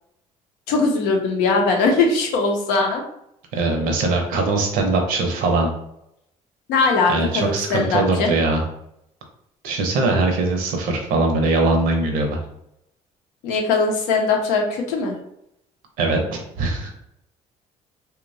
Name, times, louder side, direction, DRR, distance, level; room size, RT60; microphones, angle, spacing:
voice 1, 0.7-3.0 6.7-8.3 13.4-15.1, left 4 dB, 90° left, 2 dB, 0.6 m, -20 dB
voice 2, 3.5-5.7 7.1-8.6 9.6-12.4 16.0-16.9, right 3 dB, 80° right, 3 dB, 0.6 m, -21 dB
2.8 x 2.2 x 2.5 m, 0.79 s
supercardioid pair, 75°, 15 cm